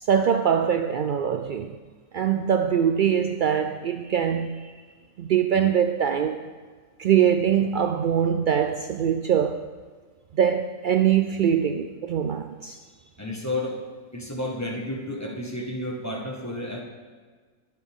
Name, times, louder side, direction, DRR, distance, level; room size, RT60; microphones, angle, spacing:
voice 1, 0.0-1.8 2.1-4.7 5.2-6.4 7.0-9.7 10.3-12.8, right 8 dB, 75° right, 7 dB, 0.4 m, -23 dB
voice 2, 13.2-13.8 14.1-16.8, left 1 dB, 15° left, -1 dB, 1.4 m, -31 dB
21.0 x 7.2 x 3.6 m, 1.5 s
omnidirectional pair, 1.4 m